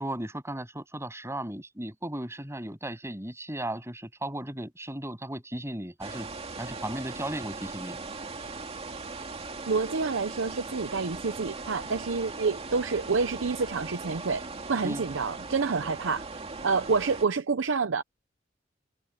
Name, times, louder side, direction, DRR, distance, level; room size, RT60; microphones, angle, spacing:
voice 1, 0.0-6.3 6.6-8.0 14.8-15.1, right 1 dB, 15° right, 8.0 m, -36 dB
sound 1, 6.0-17.3, right 3 dB, 35° right, 2.3 m, -39 dB
voice 2, 9.7-14.4 14.7-18.0, right 4 dB, 85° right, 0.7 m, -28 dB
head